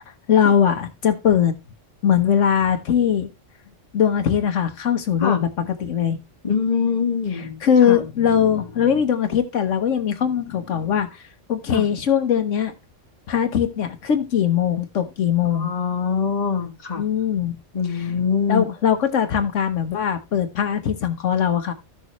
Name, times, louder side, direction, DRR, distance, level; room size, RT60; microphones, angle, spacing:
voice 1, 0.3-1.5 2.0-3.3 3.9-6.2 7.3-11.2 11.5-12.7 13.3-15.7 17.0-17.6 18.2-18.3 18.5-21.7, left 8 dB, 80° left, 1.3 m, -20 dB
voice 2, 6.4-7.6 7.9-8.1 11.7-11.9 15.4-17.0 17.7-18.7, left 6 dB, 35° left, 1.3 m, -23 dB
13.5 x 6.6 x 3.0 m
omnidirectional pair, 1.3 m